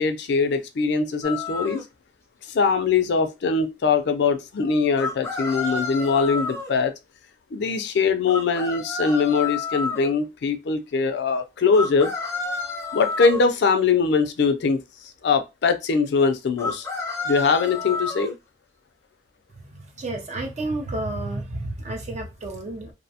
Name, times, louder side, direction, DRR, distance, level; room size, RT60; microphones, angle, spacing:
voice 1, 0.0-1.9 2.5-6.9 7.5-12.1 12.9-14.8 15.2-16.9 17.2-18.4, left 5 dB, 65° left, 0.4 m, -22 dB
sound 1, 1.2-1.8 5.0-6.7 8.3-10.1 11.7-13.5 16.6-18.3, left 3 dB, 15° left, 0.6 m, -30 dB
voice 2, 19.7-22.9, right 2 dB, 40° right, 0.5 m, -31 dB
2.6 x 2.0 x 2.7 m
head